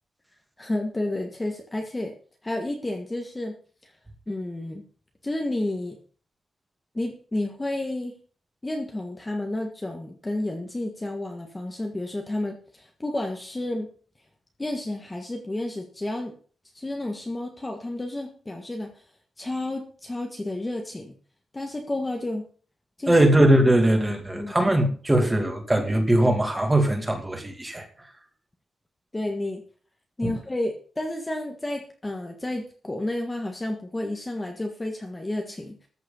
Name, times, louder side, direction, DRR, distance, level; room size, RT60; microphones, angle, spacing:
voice 1, 0.6-2.1 2.4-3.6 3.8-3.9 4.3-4.8 5.2-6.0 6.9-8.1 8.6-13.9 14.6-16.4 16.7-19.0 19.4-21.1 21.5-22.5 23.0-23.1 24.3-24.7 29.1-29.6 30.2-35.9, left 1 dB, 15° left, 1.5 m, -31 dB
voice 2, 23.1-27.9 30.2-30.3, right 1 dB, 10° right, 2.4 m, -20 dB
14.5 x 6.4 x 7.0 m
wide cardioid pair, 175°, 0 cm